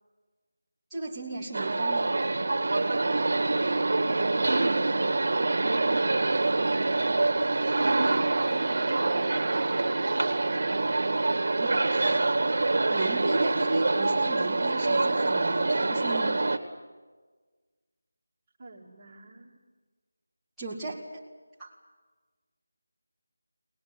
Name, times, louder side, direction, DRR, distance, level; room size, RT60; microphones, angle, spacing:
voice 1, 0.9-2.1 11.6-12.3 12.9-16.4 20.6-21.0 21.6-21.7, right 2 dB, ahead, -16 dB, 2.8 m, -35 dB
sound 1, 1.5-16.6, right 2 dB, 45° right, 2.0 m, -25 dB
voice 2, 3.3-6.7 7.8-9.6 18.6-19.6, right 3 dB, 25° right, -3 dB, 2.4 m, -45 dB
23.0 x 20.5 x 9.5 m, 1.3 s
figure-of-eight pair, 175°, 0 cm